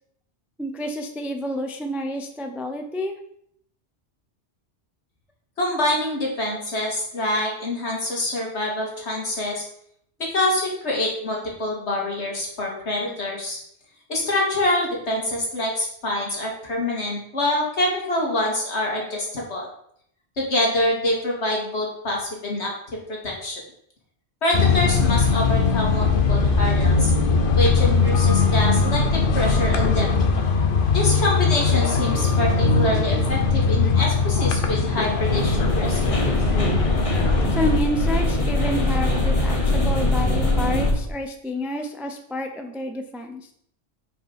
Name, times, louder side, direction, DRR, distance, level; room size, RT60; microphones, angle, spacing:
voice 1, 0.6-3.2 37.5-43.5, equal, ahead, 5 dB, 0.4 m, -29 dB
voice 2, 5.6-9.6 10.2-13.6 14.1-19.7 20.4-22.7 23.2-23.6 24.4-27.1 27.6-30.2 30.9-36.0, left 1 dB, 70° left, -2 dB, 2.2 m, -25 dB
sound 1, 24.5-37.8, left 4 dB, 50° left, 1.0 m, -20 dB
sound 2, 35.2-40.9, left 1 dB, 30° left, 1.2 m, -22 dB
6.2 x 5.0 x 5.2 m, 0.69 s
omnidirectional pair, 1.2 m